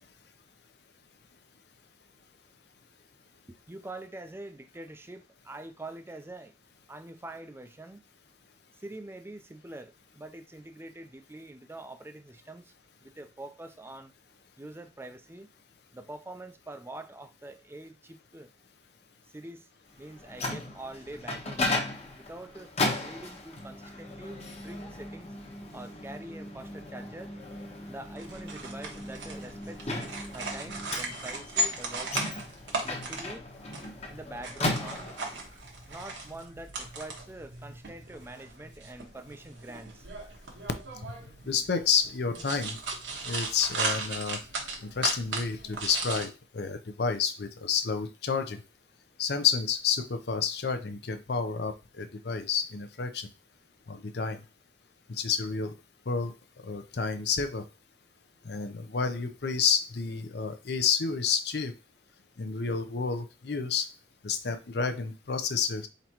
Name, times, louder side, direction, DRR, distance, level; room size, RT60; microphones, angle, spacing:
voice 1, 3.7-6.5 6.9-8.1 8.8-12.7 13.0-14.1 14.6-15.5 15.9-18.5 19.3-19.7 20.0-21.8 22.1-22.7 23.0-25.4 25.7-27.3 27.9-29.9 30.3-32.4 32.9-33.5 34.1-35.1 35.9-40.1 58.4-58.5, right 1 dB, 15° right, 0.4 m, -45 dB
Microwave oven, 20.0-35.5, left 2 dB, 35° left, 1.0 m, -36 dB
sound 1, 28.2-46.2, right 2 dB, 85° right, 1.4 m, -37 dB
voice 2, 41.4-42.8 43.2-44.4 44.9-48.6 49.2-53.3 53.9-54.4 55.1-55.7 56.1-56.3 56.6-57.6 58.4-61.7 62.4-63.9 64.2-65.9, left 6 dB, 65° left, 0.6 m, -30 dB
4.4 x 4.0 x 2.9 m
head